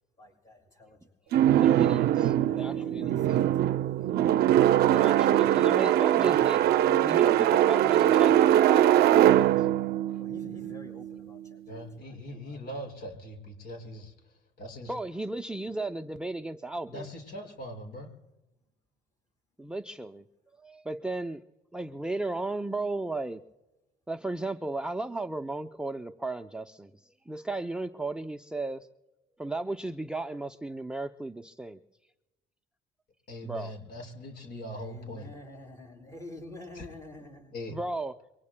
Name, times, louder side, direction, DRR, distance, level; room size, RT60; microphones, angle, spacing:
voice 1, 0.2-1.7 2.4-4.8 10.2-12.6 34.6-37.5, left 2 dB, 20° left, 1 dB, 6.8 m, -49 dB
sound 1, 1.3-11.3, right 12 dB, 70° right, 0.5 m, -22 dB
voice 2, 1.6-3.1 4.9-9.7 14.9-17.1 19.6-20.2 20.6-21.4 21.7-23.4 24.1-28.9 29.4-31.8 33.4-33.7 37.7-38.1, right 2 dB, 5° right, 5 dB, 0.5 m, -35 dB
voice 3, 11.7-14.9 16.9-18.1 33.3-35.3 36.7-36.9 37.5-37.7, equal, 65° left, 2 dB, 5.9 m, -41 dB
27.0 x 24.0 x 2.2 m, 1.0 s
cardioid pair, 110°, 17 cm